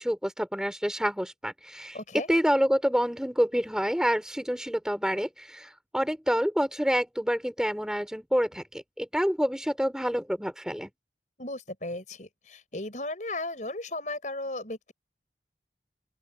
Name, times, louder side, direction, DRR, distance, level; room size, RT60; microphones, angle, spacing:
voice 1, 0.0-2.0 2.3-10.9, equal, 5° right, 3.4 m, -27 dB
voice 2, 1.9-2.3 11.4-14.9, left 2 dB, 45° left, 6.2 m, -35 dB
open air
head